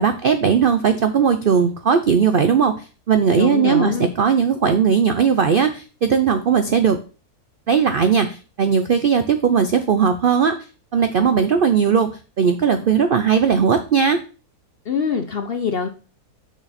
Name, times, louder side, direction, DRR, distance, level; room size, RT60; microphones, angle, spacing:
voice 1, 0.0-7.0 7.7-10.6 10.9-12.1 12.4-14.2, right 6 dB, 75° right, 9 dB, 0.5 m, -18 dB
voice 2, 3.4-4.1 14.9-15.9, left 5 dB, 55° left, 7 dB, 0.6 m, -23 dB
6.3 x 6.2 x 4.2 m, 0.35 s
omnidirectional pair, 1.7 m